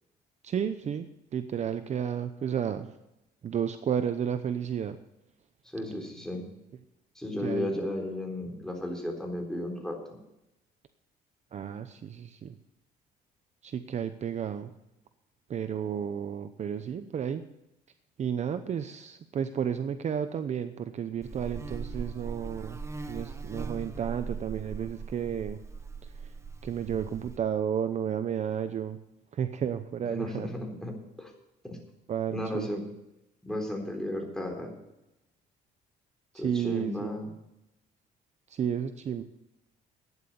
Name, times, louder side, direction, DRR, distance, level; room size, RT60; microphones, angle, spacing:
voice 1, 0.4-2.9 3.4-5.0 7.4-7.7 11.5-12.6 13.6-14.7 15.5-17.4 18.2-22.8 23.1-25.6 26.0-26.3 26.6-29.0 29.3-30.5 32.1-32.7 36.3-37.2 38.5-39.2, right 8 dB, 45° right, 10 dB, 0.8 m, -32 dB
voice 2, 5.7-6.4 7.2-10.0 30.0-31.3 31.6-31.8 32.3-32.8 33.4-34.7 36.3-37.3, left 1 dB, 5° left, 1 dB, 3.8 m, -34 dB
Buzz, 21.2-27.4, right 4 dB, 15° right, 1.1 m, -39 dB
12.5 x 9.8 x 7.0 m, 0.89 s
cardioid pair, 110°, 17 cm